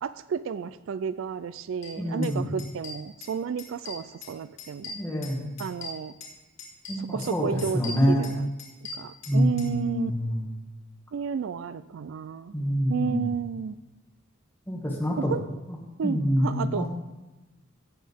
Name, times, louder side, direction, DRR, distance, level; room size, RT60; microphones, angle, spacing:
voice 1, 0.0-5.0 5.6-6.1 7.0-8.5 9.0-10.1 11.1-12.5 12.9-13.7 15.3-15.4 16.0-16.9, right 6 dB, 70° right, 15 dB, 0.3 m, -32 dB
sound 1, 1.8-1.9 2.2-2.3 2.6-3.3 3.6-4.3 4.6-6.3 6.6-7.3 7.6-9.7, left 3 dB, 65° left, 2.6 m, -40 dB
voice 2, 2.0-2.5 4.9-5.4 6.9-8.2 9.3-10.5 12.5-13.3 14.7-15.3 15.7-15.8 16.0-16.9, equal, 10° left, -2 dB, 1.9 m, -26 dB
17.5 x 7.5 x 3.5 m, 1.0 s
head